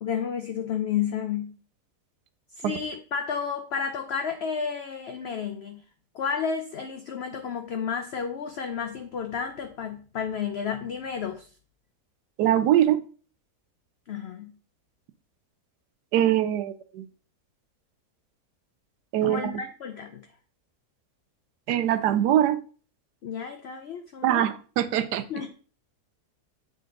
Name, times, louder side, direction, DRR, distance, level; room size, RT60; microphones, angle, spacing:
voice 1, 0.0-1.5 2.6-5.8 6.1-11.5 14.1-14.5 19.2-20.3 23.2-24.4 25.3-25.5, left 7 dB, 65° left, 6 dB, 0.6 m, -31 dB
voice 2, 12.4-13.0 16.1-17.0 19.1-19.5 21.7-22.6 24.2-25.2, right 11 dB, 85° right, 12 dB, 1.2 m, -22 dB
7.9 x 3.8 x 3.8 m, 0.39 s
omnidirectional pair, 1.7 m